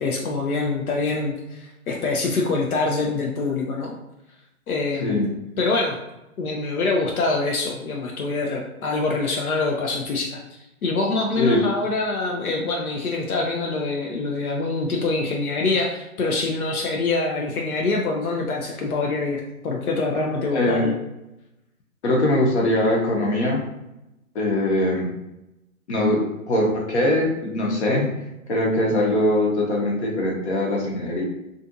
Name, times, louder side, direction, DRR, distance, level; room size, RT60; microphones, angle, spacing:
voice 1, 0.0-3.9 4.7-5.2 5.6-6.0 6.4-20.9, left 3 dB, 85° left, 0 dB, 0.6 m, -25 dB
voice 2, 20.5-20.9 22.0-23.6 24.3-25.1 25.9-28.1 28.5-31.2, left 1 dB, 50° left, -2 dB, 0.9 m, -21 dB
2.5 x 2.5 x 2.5 m, 0.92 s
hypercardioid pair, 140°, 42 cm